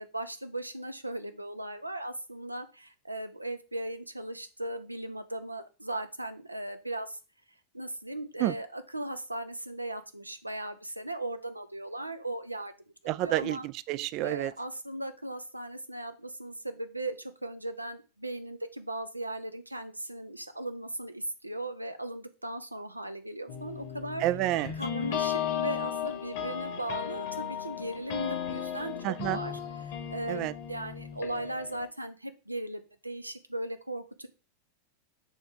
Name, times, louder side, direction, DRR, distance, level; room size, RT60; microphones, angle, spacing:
voice 1, 0.0-7.2 7.7-12.7 13.0-13.7 14.2-24.2 24.8-34.3, right 1 dB, 85° right, 0.6 m, -38 dB
voice 2, 13.1-14.5 24.2-24.7 29.0-29.4 30.3-30.5, right 15 dB, 40° right, 0.3 m, -29 dB
sound 1, 23.5-31.9, left 9 dB, 50° left, 1.2 m, -35 dB
6.5 x 3.4 x 4.8 m
figure-of-eight pair, 90°, 0 cm